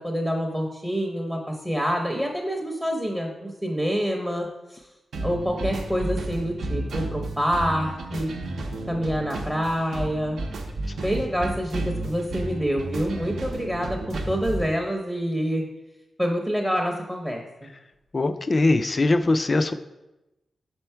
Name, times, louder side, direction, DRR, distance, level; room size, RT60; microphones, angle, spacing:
voice 1, 0.0-4.9 5.2-8.3 8.9-10.4 11.0-15.7 16.2-17.7, equal, 5° right, 1 dB, 0.6 m, -27 dB
sound 1, 5.1-14.7, right 2 dB, 70° right, 0.7 m, -32 dB
voice 2, 18.1-19.7, left 2 dB, 30° left, 11 dB, 0.3 m, -21 dB
6.0 x 4.4 x 4.4 m, 0.97 s
wide cardioid pair, 165°, 0 cm